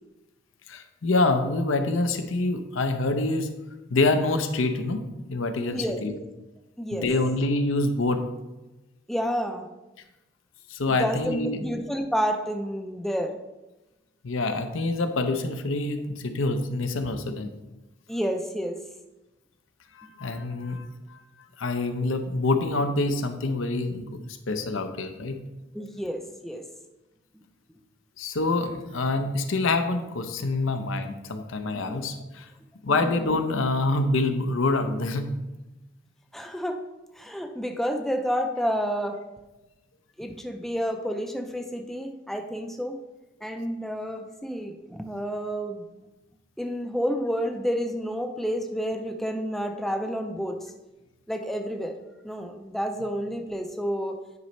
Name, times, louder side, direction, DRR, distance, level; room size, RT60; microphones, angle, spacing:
voice 1, 0.7-3.5 3.9-5.0 5.3-6.2 6.9-8.3 10.7-11.6 14.2-17.5 19.9-21.2 21.6-24.2 24.5-25.4 28.2-32.5 32.8-35.3, left 2 dB, 85° left, 7 dB, 0.7 m, -26 dB
voice 2, 9.1-9.7 10.9-13.4 18.1-18.8 20.0-20.1 25.7-26.6 31.7-32.0 32.9-33.1 36.3-36.8 37.2-39.2 40.2-43.0 43.4-45.8 46.6-50.6 51.3-52.0 52.2-54.2, equal, ahead, 4 dB, 0.4 m, -30 dB
9.5 x 5.2 x 3.1 m, 1.0 s
head